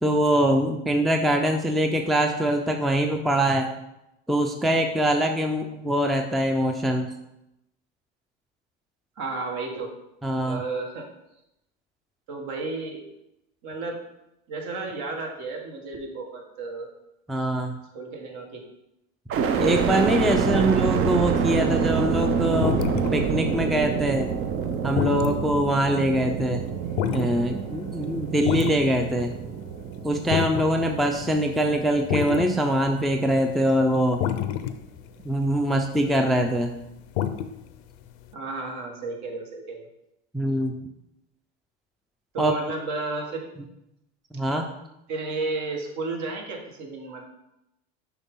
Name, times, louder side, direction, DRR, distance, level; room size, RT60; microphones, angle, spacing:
voice 1, 0.0-3.7 4.3-7.1 10.2-10.6 17.3-17.8 19.6-24.3 24.8-26.6 27.1-29.3 30.0-34.2 35.2-36.7 40.3-40.8 42.4-42.5 44.3-44.7, right 1 dB, ahead, 4 dB, 0.5 m, -23 dB
voice 2, 9.2-9.9 10.4-11.0 12.3-13.0 13.6-14.0 14.5-16.9 17.4-17.5 17.9-18.6 20.4-20.7 38.3-39.9 42.3-43.5 45.1-47.2, right 3 dB, 60° right, 2 dB, 1.7 m, -33 dB
sound 1, 19.3-33.3 33.8-34.5, right 6 dB, 40° right, 0.7 m, -27 dB
sound 2, 21.9-22.3 22.6-23.2 23.6-29.1 29.3-29.4 29.7-30.7 30.9-31.0 31.2-31.3 31.9-32.5 32.8-36.8 37.2-37.8 38.0-38.1, left 10 dB, 75° left, 0.6 m, -28 dB
6.8 x 5.0 x 3.7 m, 0.87 s
supercardioid pair, 100°, 33 cm